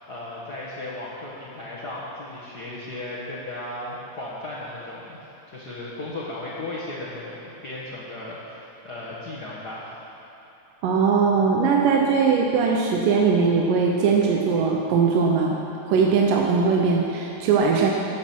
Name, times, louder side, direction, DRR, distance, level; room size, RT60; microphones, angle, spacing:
voice 1, 0.1-5.2 5.5-10.0, left 2 dB, 70° left, -8 dB, 0.9 m, -35 dB
voice 2, 10.8-15.6 15.9-17.9, right 5 dB, 75° right, 0 dB, 2.3 m, -20 dB
13.5 x 8.9 x 6.0 m, 3.0 s
omnidirectional pair, 4.2 m